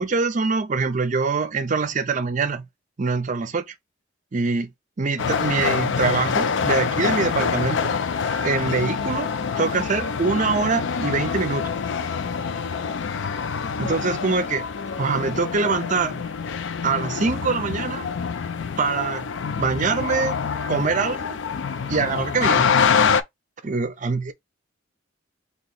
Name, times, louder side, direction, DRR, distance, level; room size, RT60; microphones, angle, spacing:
voice 1, 0.0-2.7 3.0-3.7 4.3-4.7 5.0-7.9 8.4-9.3 9.6-11.7 13.8-14.7 15.0-16.2 16.8-18.1 18.8-19.3 19.6-20.3 20.7-21.4 21.9-22.7 23.6-24.3, right 4 dB, 40° right, 0.5 m, -24 dB
sound 1, 5.2-23.2, left 6 dB, 65° left, 0.4 m, -25 dB
3.0 x 2.9 x 4.1 m
head